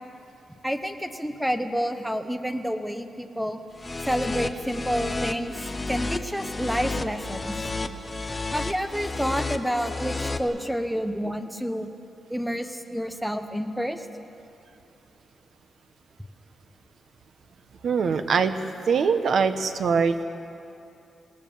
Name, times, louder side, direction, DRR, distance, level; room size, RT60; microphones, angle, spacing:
voice 1, 0.6-3.6 4.1-5.6 5.9-7.6 8.5-11.9 12.3-14.1, equal, ahead, 7 dB, 1.1 m, -29 dB
sound 1, 3.8-10.4, left 3 dB, 20° left, 0.9 m, -31 dB
voice 2, 17.8-18.6 18.9-20.2, right 5 dB, 60° right, 9 dB, 1.1 m, -22 dB
26.5 x 18.5 x 7.2 m, 2.7 s
wide cardioid pair, 175°, 0 cm